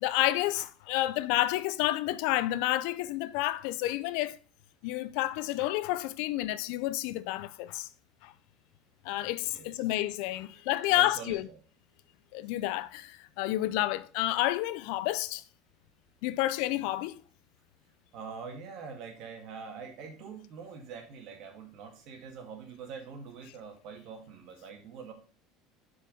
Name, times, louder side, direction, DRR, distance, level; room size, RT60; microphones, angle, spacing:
voice 1, 0.0-4.4 4.8-7.9 8.2-8.3 9.1-11.5 12.3-15.4 16.2-17.2, left 16 dB, 75° left, 0.5 m, -30 dB
voice 2, 9.4-9.8 10.5-10.6 10.9-11.6 18.1-25.1, right 5 dB, 60° right, 1.9 m, -44 dB
6.0 x 4.7 x 5.0 m
supercardioid pair, 115°, 0 cm